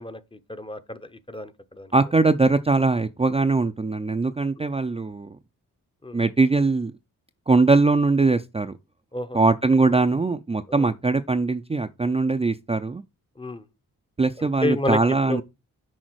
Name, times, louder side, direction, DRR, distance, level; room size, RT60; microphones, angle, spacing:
voice 1, 0.0-1.9 6.0-6.2 9.1-9.4 10.7-10.9 13.4-13.7 14.4-15.0 15.3-15.4, left 2 dB, 15° left, 0.7 m, -30 dB
voice 2, 1.9-5.4 6.1-6.9 7.5-8.7 9.3-13.0 14.2-15.4, right 3 dB, 20° right, 0.4 m, -21 dB
6.4 x 3.9 x 6.1 m
cardioid pair, 75°, 34 cm